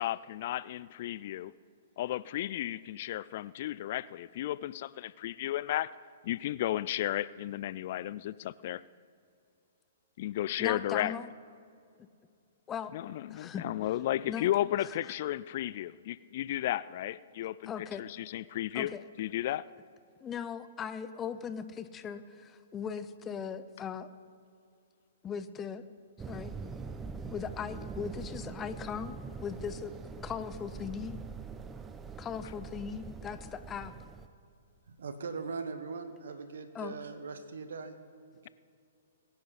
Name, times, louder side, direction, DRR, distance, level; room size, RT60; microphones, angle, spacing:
voice 1, 0.0-1.5 2.0-5.9 6.2-8.8 10.2-11.1 12.9-18.9 19.2-19.6, left 13 dB, 50° left, 19 dB, 0.3 m, -33 dB
voice 2, 10.6-11.3 12.7-12.9 13.3-13.6 14.3-14.5 17.7-18.0 18.7-19.0 20.2-24.1 25.2-25.8 26.3-26.5 27.3-29.9 30.2-31.2 32.2-33.9 36.7-37.0, left 7 dB, 20° left, 12 dB, 0.7 m, -38 dB
sound 1, 26.2-34.3, right 5 dB, 15° right, 0.7 m, -43 dB
voice 3, 34.9-38.0 38.4-38.5, right 4 dB, 75° right, 9 dB, 1.4 m, -40 dB
21.5 x 10.0 x 4.1 m, 2.4 s
hypercardioid pair, 125°, 0 cm